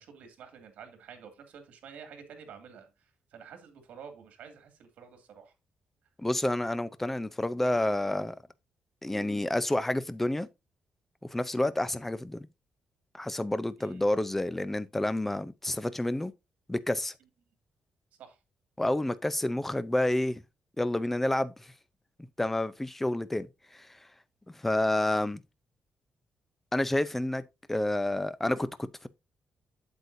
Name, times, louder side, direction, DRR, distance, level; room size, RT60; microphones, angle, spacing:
voice 1, 0.0-5.5 13.8-14.0 18.2-18.4, right 7 dB, 80° right, 2.3 m, -49 dB
voice 2, 6.2-8.4 9.0-10.5 11.3-12.5 13.1-16.3 16.7-17.1 18.8-20.4 20.8-21.5 22.4-23.5 24.6-25.4 26.7-27.4 27.7-29.1, left 1 dB, 10° left, 0.6 m, -29 dB
8.2 x 8.1 x 2.7 m
cardioid pair, 120°, 2 cm